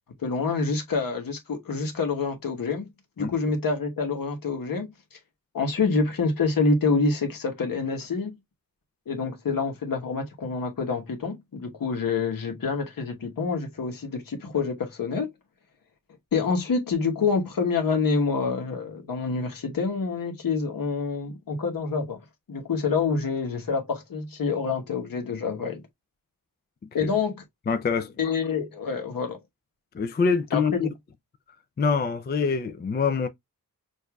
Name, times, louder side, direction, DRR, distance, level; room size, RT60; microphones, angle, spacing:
voice 1, 0.2-2.8 3.2-5.2 5.5-8.3 9.1-15.3 16.3-22.2 22.5-25.8 26.9-27.4 28.2-29.4 30.5-30.9, left 4 dB, 65° left, 1.2 m, -27 dB
voice 2, 27.7-28.1 29.9-30.9 31.8-33.3, left 5 dB, 30° left, 0.4 m, -25 dB
6.4 x 2.6 x 2.3 m
wide cardioid pair, 140°, 36 cm